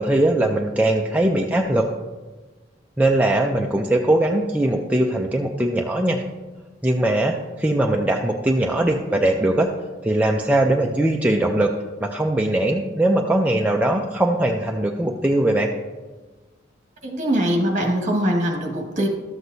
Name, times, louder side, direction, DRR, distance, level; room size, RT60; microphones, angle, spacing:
voice 1, 0.0-1.9 3.0-6.2 6.8-9.7 10.0-11.7 12.0-15.7, right 1 dB, 10° right, 0 dB, 0.4 m, -20 dB
voice 2, 17.0-19.1, equal, 40° right, 1 dB, 1.7 m, -22 dB
12.5 x 7.9 x 2.7 m, 1.3 s
head